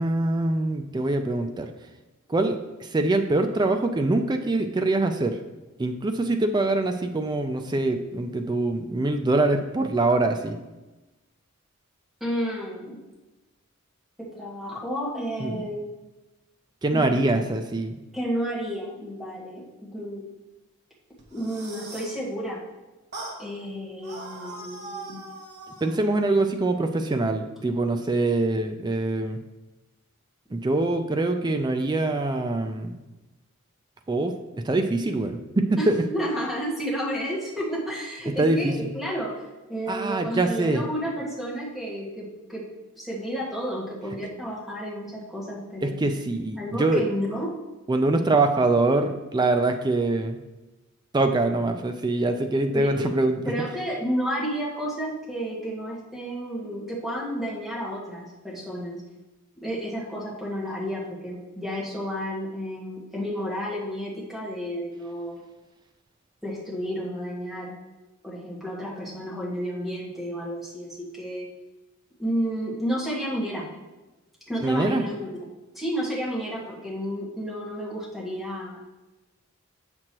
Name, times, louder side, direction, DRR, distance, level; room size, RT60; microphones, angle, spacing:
voice 1, 0.0-1.7 2.3-5.4 5.8-10.6 15.4-15.7 16.8-18.0 25.8-29.4 30.5-33.0 34.1-36.0 38.3-38.9 39.9-40.8 45.8-47.1 47.9-50.4 51.1-53.4 74.6-75.0, right 2 dB, 20° right, 6 dB, 0.3 m, -24 dB
voice 2, 12.2-12.9 14.3-15.8 16.9-17.4 18.1-20.2 21.3-22.6 23.4-25.2 35.8-35.9 36.1-39.3 39.7-42.6 42.9-45.9 46.6-47.5 52.7-53.0 53.4-59.0 59.6-65.4 66.4-67.7 68.2-71.5 72.2-73.6 74.5-75.3 75.7-78.8, equal, ahead, -7 dB, 1.5 m, -31 dB
sound 1, 21.2-22.2 23.1-23.4 24.0-26.0, right 2 dB, 50° right, 1.3 m, -40 dB
7.6 x 6.1 x 2.9 m, 1.1 s
head